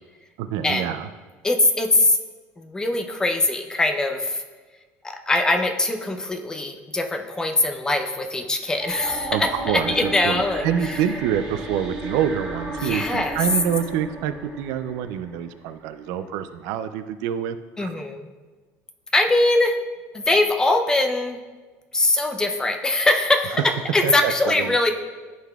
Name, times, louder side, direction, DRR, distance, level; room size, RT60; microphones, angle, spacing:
voice 1, 0.4-1.1 9.3-18.0 23.5-23.7 24.0-24.9, right 9 dB, 75° right, 11 dB, 0.3 m, -26 dB
voice 2, 1.4-2.2 2.6-4.4 5.0-10.7 12.8-13.4 17.8-18.2 19.1-19.7 20.1-21.4 21.9-23.6 23.9-24.9, left 2 dB, 10° left, 5 dB, 0.5 m, -22 dB
sound 1, 8.8-15.9, right 1 dB, 15° right, 1.8 m, -34 dB
12.0 x 4.0 x 2.3 m, 1.3 s
cardioid pair, 145°, 6 cm